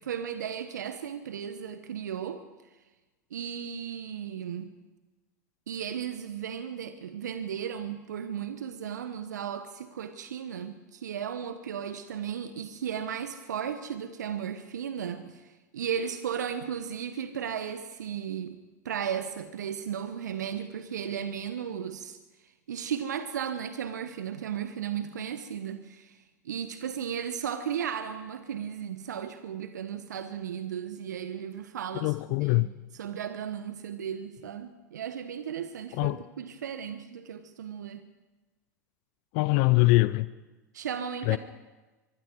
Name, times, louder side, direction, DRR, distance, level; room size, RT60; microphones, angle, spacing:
voice 1, 0.1-2.4 3.3-4.7 5.7-18.6 18.8-22.2 22.7-26.2 26.4-32.1 32.4-32.7 33.0-38.0 40.7-41.4, right 8 dB, 75° right, 10 dB, 1.2 m, -35 dB
voice 2, 32.0-32.7 35.9-36.2 39.3-40.3 41.3-41.4, left 22 dB, 55° left, 17 dB, 0.7 m, -23 dB
25.0 x 23.0 x 4.7 m, 1.2 s
hypercardioid pair, 80°, 9 cm